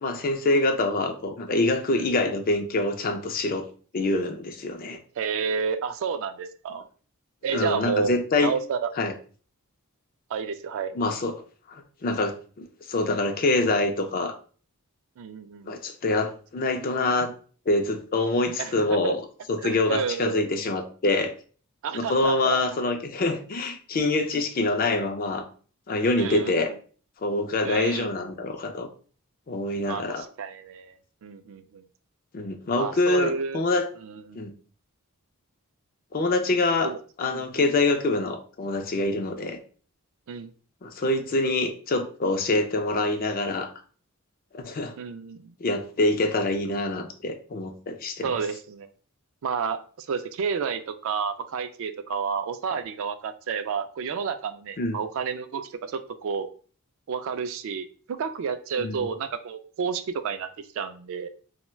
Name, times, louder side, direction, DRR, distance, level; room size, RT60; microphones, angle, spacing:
voice 1, 0.0-3.7 3.9-5.0 7.5-8.5 9.0-9.1 11.0-11.4 11.7-14.4 15.7-17.3 17.7-19.2 19.5-21.3 21.9-25.4 25.9-26.7 27.2-28.9 29.5-30.3 32.3-33.9 34.3-34.5 36.1-36.9 37.2-39.6 40.8-43.7 44.5-45.0 45.6-48.3 54.8-55.0 58.8-59.1, left 2 dB, 40° left, 6 dB, 0.4 m, -25 dB
voice 2, 5.2-6.8 7.4-9.1 10.3-10.9 15.2-15.8 18.6-19.1 19.6-20.4 21.8-22.6 26.2-26.8 27.6-28.1 29.9-31.0 31.2-31.8 32.8-33.6 34.0-34.4 36.8-37.0 37.3-37.4 40.3-40.5 45.0-45.5 48.2-48.9 49.4-56.5 57.1-60.5 60.7-61.3, right 6 dB, 60° right, 10 dB, 0.3 m, -30 dB
4.3 x 2.1 x 2.2 m, 0.41 s
head